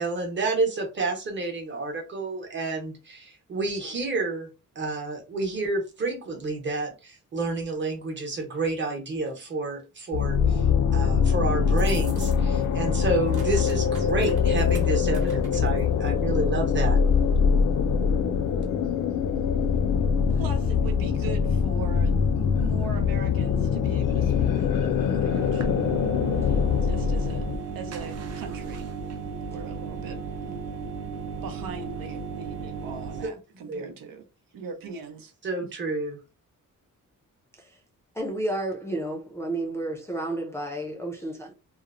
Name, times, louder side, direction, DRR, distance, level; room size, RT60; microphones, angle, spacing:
voice 1, 0.0-4.5 4.7-17.0 33.2-33.3 33.7-33.9 35.4-36.2, right 3 dB, 35° right, 0.9 m, -30 dB
sound 1, 10.1-27.6, left 6 dB, 75° left, 0.5 m, -23 dB
sound 2, 11.7-12.6 12.9-15.8, right 5 dB, 65° right, 1.0 m, -47 dB
voice 2, 20.4-25.7 26.4-26.5 26.8-27.5 27.7-28.9 29.5-30.6 31.4-34.3 34.5-35.3 35.6-35.7, right 5 dB, 90° right, 0.7 m, -41 dB
sound 3, 23.6-33.3, right 5 dB, 50° right, 0.5 m, -35 dB
voice 3, 38.1-41.5, right 1 dB, 10° left, 0.4 m, -31 dB
2.9 x 2.0 x 2.4 m
wide cardioid pair, 150°, 33 cm